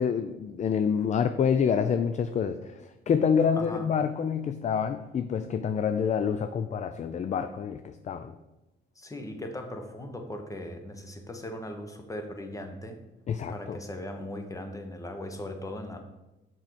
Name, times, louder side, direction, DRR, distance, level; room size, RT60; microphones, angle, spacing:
voice 1, 0.0-8.3 13.3-13.8, left 7 dB, 35° left, 9 dB, 0.4 m, -27 dB
voice 2, 3.6-3.9 8.9-13.0 13.5-16.0, left 1 dB, 15° left, 5 dB, 1.0 m, -38 dB
5.9 x 4.5 x 5.0 m, 0.98 s
cardioid pair, 90°, 20 cm